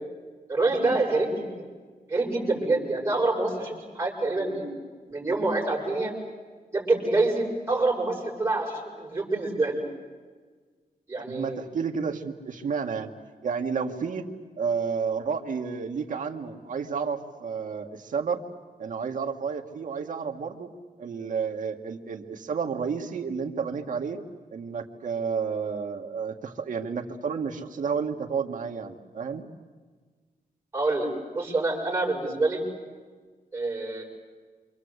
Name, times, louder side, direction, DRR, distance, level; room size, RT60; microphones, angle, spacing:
voice 1, 0.5-1.5 2.1-4.6 5.1-6.1 6.7-9.8 11.1-11.6 30.7-32.6 33.5-34.0, right 2 dB, 15° right, -3 dB, 6.8 m, -26 dB
voice 2, 11.3-13.1 13.4-14.3 14.6-18.4 18.8-20.7 21.0-24.2 24.5-29.4, right 6 dB, 60° right, 4 dB, 1.9 m, -31 dB
28.0 x 25.5 x 8.2 m, 1.5 s
wide cardioid pair, 170°, 15 cm